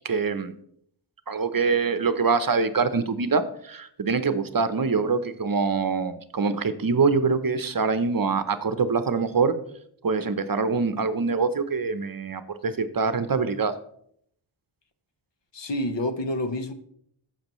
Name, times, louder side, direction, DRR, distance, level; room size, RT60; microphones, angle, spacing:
voice 1, 0.0-0.5 1.3-9.5 10.0-13.7, right 4 dB, 45° right, 0.7 m, -24 dB
voice 2, 15.5-16.7, left 1 dB, 60° left, 1.0 m, -28 dB
12.0 x 7.5 x 3.1 m
wide cardioid pair, 60°, 48 cm